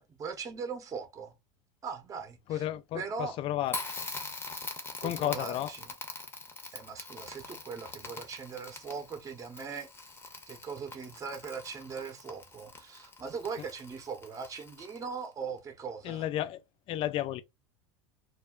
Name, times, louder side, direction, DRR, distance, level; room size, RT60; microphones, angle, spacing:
voice 1, 0.0-1.3 1.8-2.6 2.9-3.4 5.0-5.9 6.7-9.9 10.5-16.3, right 5 dB, 25° right, 0.8 m, -40 dB
voice 2, 2.5-3.8 5.0-5.7 16.0-16.6 16.9-17.4, left 12 dB, 40° left, 0.4 m, -32 dB
Crackle, 3.7-15.3, left 3 dB, 15° left, 0.7 m, -43 dB
2.1 x 2.1 x 3.5 m
hypercardioid pair, 105°, 14 cm